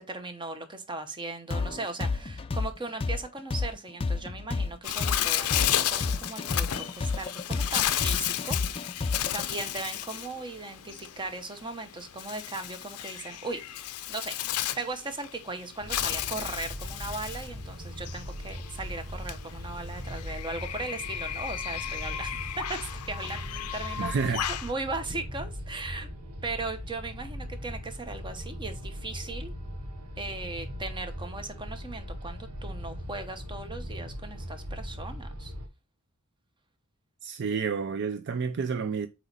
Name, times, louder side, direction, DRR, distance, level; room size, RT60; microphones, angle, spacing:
voice 1, 0.0-14.4 14.8-24.1 24.5-26.1 26.4-29.5 30.2-35.5, right 3 dB, 20° right, 0.9 m, -38 dB
sound 1, 1.5-9.4, left 3 dB, 25° left, 0.4 m, -30 dB
Bird, 4.8-24.7, left 12 dB, 80° left, 0.5 m, -33 dB
sound 2, 15.8-35.7, equal, 80° right, 1.2 m, -39 dB
voice 2, 24.0-24.4 37.2-39.1, right 5 dB, 55° right, 0.4 m, -29 dB
7.8 x 3.0 x 4.0 m
head